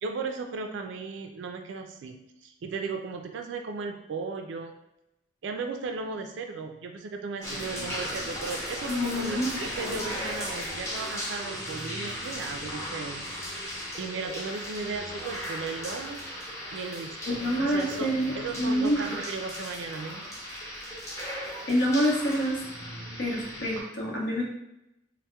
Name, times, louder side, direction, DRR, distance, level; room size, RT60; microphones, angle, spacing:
voice 1, 0.0-4.7 5.4-13.7 14.0-16.2 16.7-18.1 18.3-20.3, right 4 dB, 80° right, 5 dB, 0.3 m, -36 dB
sound 1, 7.4-23.8, equal, 15° left, 0.7 m, -36 dB
voice 2, 8.9-9.5 9.8-10.0 17.2-19.0 21.7-22.6 23.2-24.4, equal, 65° left, -3 dB, 0.9 m, -27 dB
4.1 x 2.1 x 2.3 m, 0.85 s
head